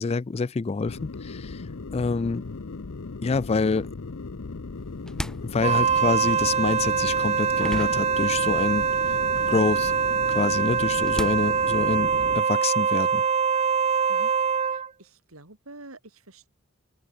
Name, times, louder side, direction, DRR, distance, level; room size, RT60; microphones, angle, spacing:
voice 1, 0.0-1.6 1.9-2.5 3.2-3.9 5.4-8.9 9.5-9.9 10.3-13.2, left 4 dB, 30° left, 0.4 m, -26 dB
sound 1, 0.8-12.4, left 3 dB, 65° left, 0.7 m, -37 dB
sound 2, 4.8-8.9 9.1-12.4, equal, 5° left, 6.4 m, -39 dB
Wind instrument woodwind instrument, 5.6-14.9, right 6 dB, 30° right, 0.5 m, -24 dB
voice 2, 14.7-16.5, right 2 dB, 75° right, 4.2 m, -47 dB
head